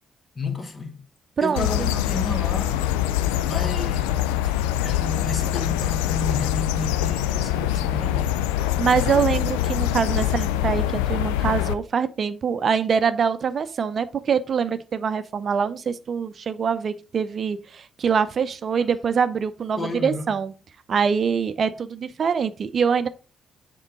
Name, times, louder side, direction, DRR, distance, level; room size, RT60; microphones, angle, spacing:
voice 1, 0.3-1.0 1.4-2.8 3.5-4.2 4.8-8.3 8.9-9.2 19.7-20.4, left 3 dB, 40° left, 1.5 m, -31 dB
voice 2, 1.4-1.7 8.8-20.5 20.9-23.1, right 6 dB, 50° right, 0.6 m, -24 dB
sound 1, 1.6-11.7, left 12 dB, 75° left, 0.4 m, -24 dB
7.3 x 3.8 x 5.0 m
figure-of-eight pair, 40°, 0 cm